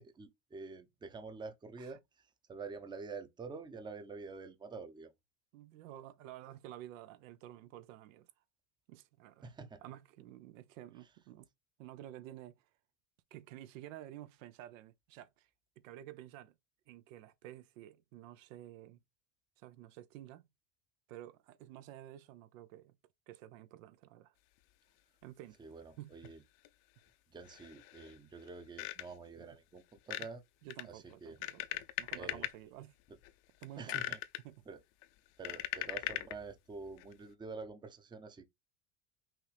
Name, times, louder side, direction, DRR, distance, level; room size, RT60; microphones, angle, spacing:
voice 1, 0.0-2.0 2.5-5.1 9.4-9.8 25.6-26.4 27.3-30.4 30.8-31.4 32.1-32.4 33.8-34.2 34.7-34.8 35.4-38.4, right 4 dB, 10° right, 0.6 m, -47 dB
voice 2, 5.5-8.3 8.9-9.5 9.8-11.5 11.8-12.7 13.3-15.5 15.8-16.5 16.9-19.0 19.6-20.4 21.1-23.0 23.3-24.3 25.2-25.6 26.0-26.3 29.3-29.6 30.2-30.3 30.6-33.0 33.6-34.0 34.4-34.7, right 13 dB, 85° right, 0.7 m, -51 dB
sound 1, 26.2-26.3 26.6-26.7 27.4-28.2 28.5-29.3 30.0-30.3 30.7-32.5 33.1-33.3 33.6-34.4 35.0-36.4 37.0-37.1, left 15 dB, 55° left, 0.6 m, -40 dB
6.0 x 2.6 x 3.3 m
supercardioid pair, 135°, 38 cm